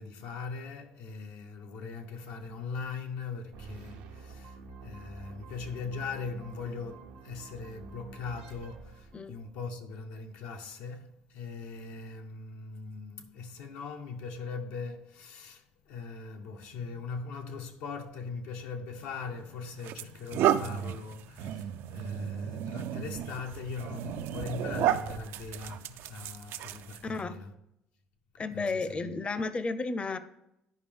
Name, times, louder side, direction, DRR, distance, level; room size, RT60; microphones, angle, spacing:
voice 1, 0.0-27.5 28.5-29.0, left 4 dB, 80° left, 0.9 m, -40 dB
sound 1, 3.5-9.7, right 4 dB, 85° right, 0.8 m, -49 dB
sound 2, 19.0-19.2 19.8-27.2, right 11 dB, 70° right, 0.4 m, -33 dB
voice 2, 27.0-27.4 28.4-30.2, left 3 dB, 30° left, 0.6 m, -33 dB
10.5 x 5.1 x 3.5 m
supercardioid pair, 75°, 4 cm